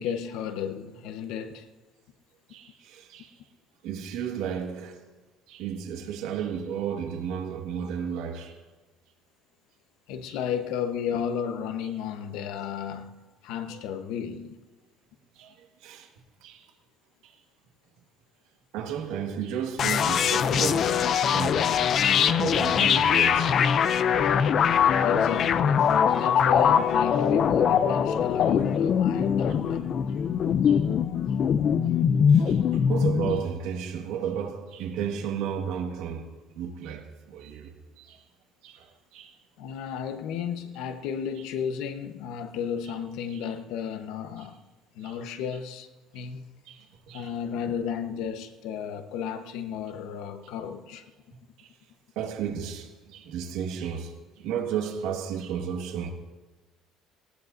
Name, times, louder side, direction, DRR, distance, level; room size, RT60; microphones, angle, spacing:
voice 1, 0.0-1.7 10.1-14.6 25.0-29.9 39.6-44.6 44.9-45.9 46.1-46.4 47.1-51.0, left 8 dB, 75° left, 1.0 m, -33 dB
voice 2, 2.5-3.3 3.8-5.0 5.5-8.6 10.3-10.4 13.7-13.8 15.4-16.1 16.4-16.7 17.2-17.3 18.7-21.1 21.3-21.9 22.3-23.5 24.2-24.5 24.8-25.0 30.6-30.8 32.3-38.2 38.6-39.4 43.3-43.5 44.4-44.5 45.0-45.2 46.6-47.3 51.6-51.7 52.1-56.1, right 8 dB, 80° right, 1.7 m, -34 dB
sound 1, 19.8-33.4, left 7 dB, 35° left, 0.5 m, -22 dB
18.5 x 18.5 x 2.7 m
cardioid pair, 175°, 0 cm